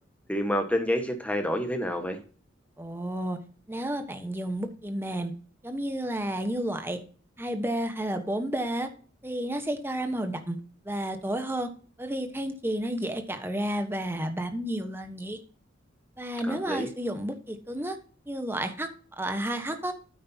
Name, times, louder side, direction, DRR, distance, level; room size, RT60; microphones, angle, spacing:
voice 1, 0.3-2.2 16.4-16.9, equal, 5° left, 5 dB, 1.3 m, -28 dB
voice 2, 2.8-3.4 3.7-5.3 5.6-7.0 7.4-8.9 9.2-10.6 10.8-11.7 12.0-15.4 16.2-18.0 18.3-18.9 19.2-19.9, right 1 dB, 10° right, 7 dB, 1.1 m, -31 dB
9.4 x 8.6 x 2.8 m, 0.40 s
head